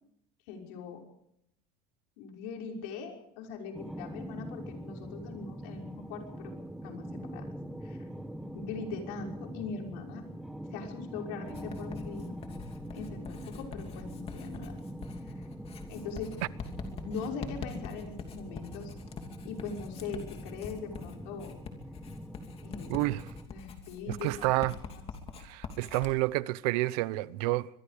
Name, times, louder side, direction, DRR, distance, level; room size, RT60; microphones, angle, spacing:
voice 1, 0.5-1.0 2.2-6.5 6.8-7.4 7.8-8.1 8.5-10.2 10.7-12.4 12.9-14.7 15.3-15.4 15.9-16.3 16.9-18.9 19.4-21.5 22.6-23.0 23.5-25.0, left 5 dB, 75° left, 5.9 m, -41 dB
sound 1, 3.7-23.5, equal, ahead, 1.1 m, -43 dB
Writing, 11.5-26.1, left 5 dB, 30° left, 2.9 m, -45 dB
voice 2, 22.9-23.3 24.1-24.8 25.4-27.7, right 19 dB, 80° right, 0.9 m, -29 dB
24.5 x 21.5 x 5.2 m
cardioid pair, 150°, 20 cm